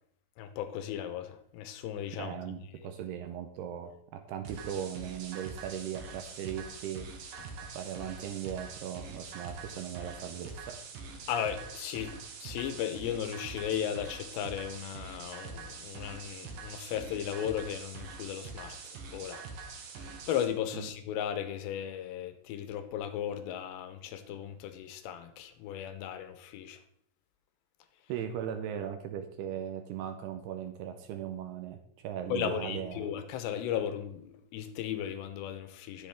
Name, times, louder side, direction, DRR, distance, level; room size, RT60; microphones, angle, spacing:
voice 1, 0.4-2.3 2.8-2.9 11.3-19.4 20.0-26.8 32.3-36.1, left 9 dB, 85° left, 9 dB, 2.9 m, -36 dB
voice 2, 2.2-7.1 7.7-10.8 20.7-20.9 28.1-33.1, right 9 dB, 80° right, 7 dB, 2.5 m, -38 dB
sound 1, 4.4-20.4, right 4 dB, 65° right, 2.4 m, -44 dB
12.0 x 7.8 x 3.5 m, 0.69 s
omnidirectional pair, 5.1 m